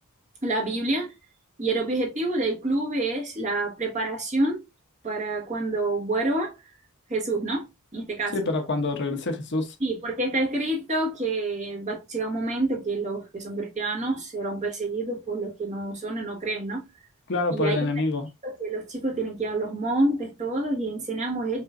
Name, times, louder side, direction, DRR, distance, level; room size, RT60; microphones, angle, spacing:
voice 1, 0.4-1.1 1.6-4.6 5.0-6.6 7.1-7.6 7.9-8.4 9.8-16.8 17.5-17.9 18.4-21.6, right 2 dB, 35° right, 1.7 m, -28 dB
voice 2, 8.3-9.7 17.3-18.3, left 3 dB, 50° left, 0.9 m, -26 dB
5.4 x 3.0 x 2.6 m
head